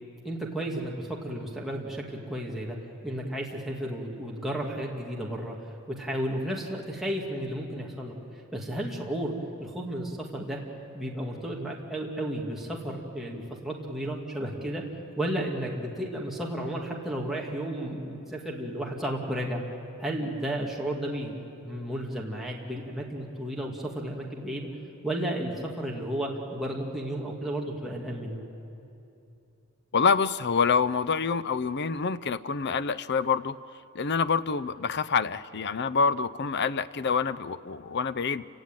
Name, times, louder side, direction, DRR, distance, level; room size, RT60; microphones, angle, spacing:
voice 1, 0.2-2.8 3.0-5.6 5.9-8.2 8.5-10.6 10.9-14.8 15.2-19.6 20.0-21.4 21.6-24.7 25.0-28.4, right 1 dB, ahead, -3 dB, 2.3 m, -33 dB
voice 2, 29.9-33.5 33.9-38.4, left 5 dB, 50° left, 15 dB, 0.6 m, -26 dB
29.0 x 17.0 x 9.1 m, 2.8 s
head